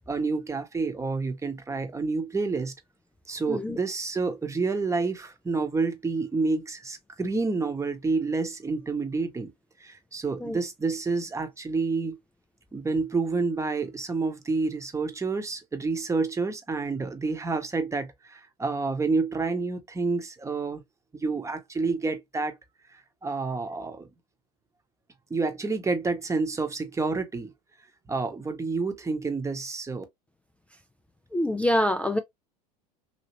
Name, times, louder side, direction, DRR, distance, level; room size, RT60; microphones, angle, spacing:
voice 1, 0.0-2.7 3.3-9.5 9.8-12.2 12.7-20.8 21.1-22.6 22.9-24.1 25.3-27.5 28.1-30.0, right 4 dB, 15° right, 1.0 m, -29 dB
voice 2, 31.3-32.2, left 1 dB, 5° left, 0.4 m, -25 dB
2.9 x 2.8 x 3.0 m
hypercardioid pair, 85°, 20 cm